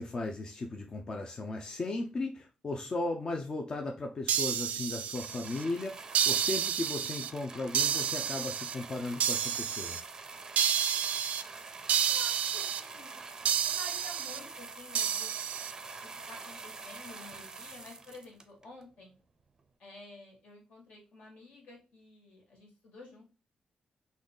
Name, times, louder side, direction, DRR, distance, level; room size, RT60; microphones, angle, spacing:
voice 1, 0.0-10.0, left 2 dB, 30° left, 3 dB, 0.4 m, -36 dB
sound 1, 4.3-5.6 6.1-7.3 7.7-8.7 9.2-10.0 10.6-11.4 11.9-12.8 13.5-14.4 14.9-15.7, right 8 dB, 90° right, 0.4 m, -30 dB
sound 2, 5.1-18.8 19.6-19.7, right 4 dB, 25° right, 0.5 m, -46 dB
voice 2, 11.3-11.6 12.1-13.2 13.4-15.4 16.3-19.2 19.8-23.2, left 2 dB, 70° left, -1 dB, 1.9 m, -51 dB
4.0 x 3.0 x 3.7 m, 0.33 s
wide cardioid pair, 170°, 2 cm